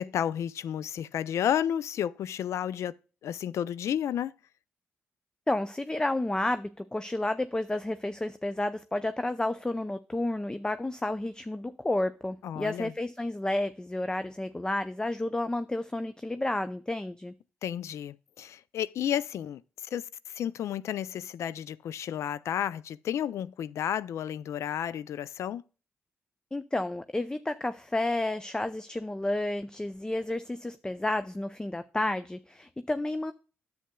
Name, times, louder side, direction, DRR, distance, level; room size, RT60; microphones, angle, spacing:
voice 1, 0.0-3.0 3.2-4.3 12.4-12.9 17.6-19.6 19.9-25.6, left 10 dB, 75° left, 0.4 m, -32 dB
voice 2, 5.5-17.3 26.5-33.3, left 1 dB, 15° left, 0.5 m, -31 dB
10.0 x 7.9 x 2.2 m
supercardioid pair, 50°, 5 cm